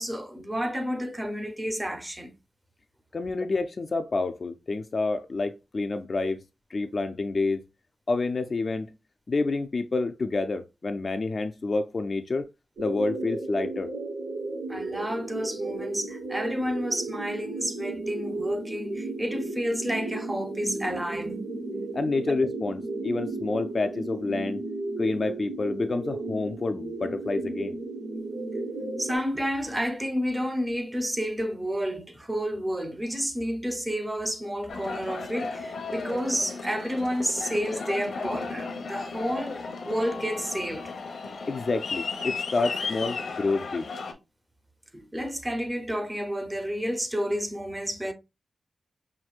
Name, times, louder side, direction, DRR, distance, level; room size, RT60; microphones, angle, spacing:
voice 1, 0.0-2.3 14.7-21.4 29.0-40.9 44.9-48.1, equal, 10° right, 0.6 m, -30 dB
voice 2, 3.1-6.4 6.7-7.6 8.1-8.9 9.3-12.5 12.8-13.9 21.9-24.6 25.0-27.8 41.5-43.9, left 3 dB, 40° left, 0.3 m, -28 dB
sound 1, 12.8-29.2, right 2 dB, 70° right, 1.4 m, -34 dB
Aircraft, 34.7-44.1, left 4 dB, 65° left, 0.9 m, -35 dB
5.8 x 2.6 x 2.3 m
wide cardioid pair, 150°, 0 cm